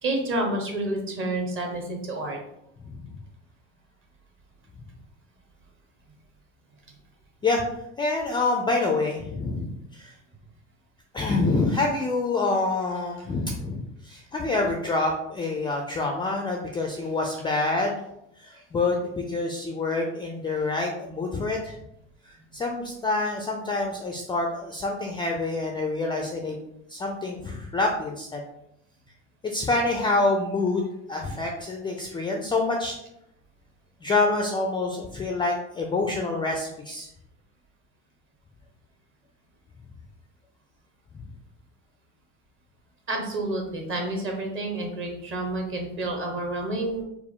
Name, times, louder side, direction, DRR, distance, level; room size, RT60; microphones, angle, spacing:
voice 1, 0.0-2.4 43.1-47.0, right 2 dB, 35° right, 1 dB, 1.2 m, -29 dB
voice 2, 8.0-10.1 11.1-18.0 18.4-21.8 22.3-26.6 26.9-28.4 29.4-33.0 34.0-37.1, left 3 dB, 15° left, 2 dB, 0.4 m, -27 dB
4.6 x 2.0 x 3.6 m, 0.79 s
hypercardioid pair, 80°, 37 cm